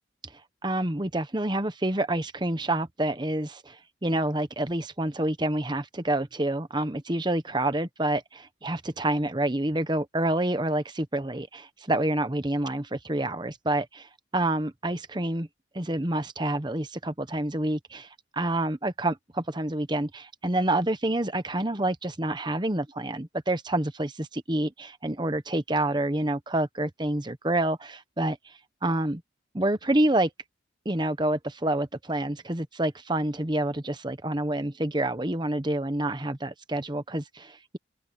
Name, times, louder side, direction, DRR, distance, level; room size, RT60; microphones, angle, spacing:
voice 1, 0.6-15.5 15.7-18.1 18.4-28.5 28.8-29.2 29.5-30.3 30.8-37.8, right 1 dB, 25° right, 1.1 m, -28 dB
open air
head